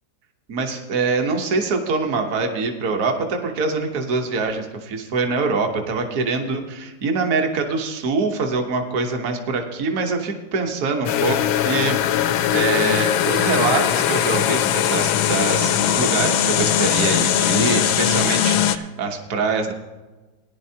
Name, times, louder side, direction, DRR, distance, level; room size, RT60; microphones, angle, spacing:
voice 1, 0.5-19.7, right 4 dB, 55° right, 4 dB, 1.4 m, -24 dB
sound 1, 11.1-18.8, left 10 dB, 75° left, 1.2 m, -20 dB
18.5 x 10.5 x 2.8 m, 1.2 s
omnidirectional pair, 1.9 m